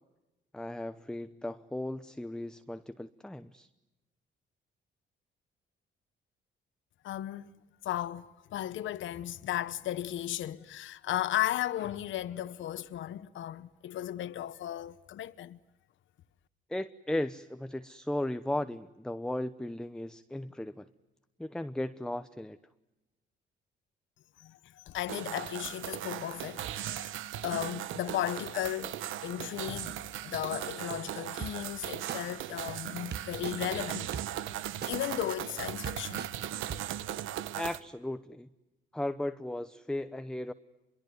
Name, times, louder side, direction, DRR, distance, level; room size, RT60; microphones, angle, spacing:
voice 1, 0.5-3.7 16.7-20.9 21.4-22.6 37.5-38.5 38.9-40.5, left 1 dB, 5° left, 0.9 m, -36 dB
voice 2, 7.0-7.5 7.8-8.2 8.5-15.6 24.4-34.1 34.9-36.3, left 12 dB, 75° left, 1.0 m, -35 dB
sound 1, 25.1-37.8, right 12 dB, 85° right, 1.2 m, -38 dB
sound 2, 31.4-31.5 32.1-32.2 33.1-33.6 34.1-34.2 34.8-34.9 35.5-35.6 35.8-36.3 36.7-36.8, right 7 dB, 55° right, 1.6 m, -37 dB
26.0 x 23.0 x 9.5 m
cardioid pair, 90°, 20 cm